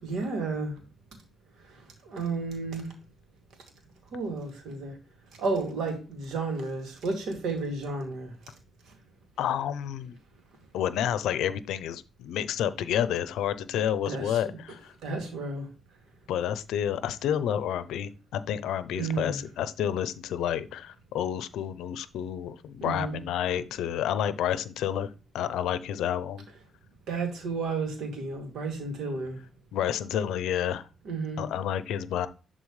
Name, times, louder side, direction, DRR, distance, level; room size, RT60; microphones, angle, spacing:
voice 1, 0.0-0.7 2.0-2.9 4.1-4.9 5.4-8.3 14.1-14.4 15.0-15.7 18.9-19.4 22.8-23.2 27.1-29.4 31.0-31.4, right 3 dB, 70° right, 2.6 m, -32 dB
voice 2, 9.4-10.2 10.7-14.9 16.3-25.1 25.3-26.5 29.7-30.9 31.4-32.3, left 10 dB, 85° left, 0.6 m, -30 dB
11.0 x 3.9 x 3.2 m
cardioid pair, 90°, 0 cm